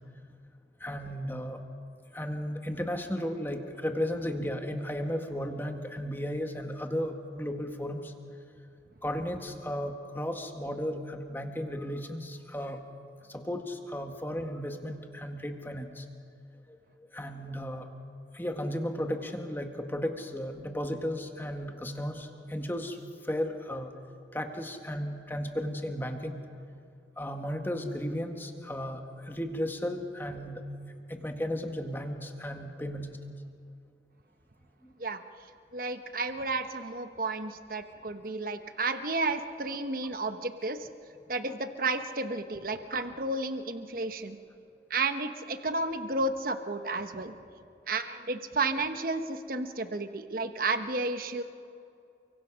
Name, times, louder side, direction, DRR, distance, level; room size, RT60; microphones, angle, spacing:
voice 1, 0.8-1.6 2.1-8.1 9.0-12.8 13.3-16.1 16.7-16.8 17.1-18.0 18.3-23.0 23.2-26.4 27.2-30.6 31.1-33.2 34.8-34.9, equal, 10° left, 5 dB, 1.7 m, -34 dB
voice 2, 35.7-40.9 41.3-44.4 44.9-47.3 47.9-51.4, right 3 dB, 50° right, 8 dB, 1.1 m, -32 dB
29.0 x 24.0 x 6.4 m, 2.5 s
head